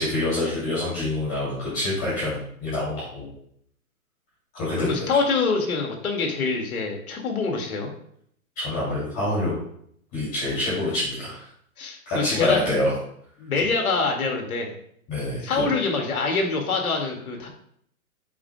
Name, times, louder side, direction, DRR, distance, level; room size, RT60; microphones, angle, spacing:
voice 1, 0.0-3.3 4.5-5.1 8.6-9.5 10.1-11.5 12.1-12.9 15.1-15.7, left 1 dB, 20° left, -9 dB, 2.8 m, -26 dB
voice 2, 4.8-7.9 11.8-12.6 13.4-14.7 15.4-17.5, left 4 dB, 75° left, 2 dB, 2.3 m, -25 dB
9.2 x 7.4 x 2.3 m, 0.68 s
hypercardioid pair, 160°, 43 cm